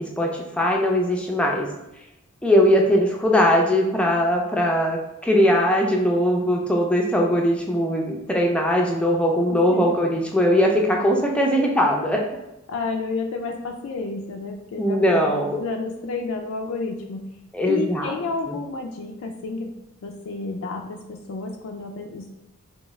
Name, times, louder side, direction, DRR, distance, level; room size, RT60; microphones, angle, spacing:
voice 1, 0.2-1.7 2.4-12.2 14.8-15.6 17.5-18.1 18.5-18.6, equal, 5° left, 0 dB, 0.4 m, -20 dB
voice 2, 9.5-9.9 12.7-17.3 17.6-19.7 20.0-22.3, left 3 dB, 75° left, 2 dB, 0.4 m, -31 dB
3.5 x 2.8 x 3.1 m, 0.93 s
head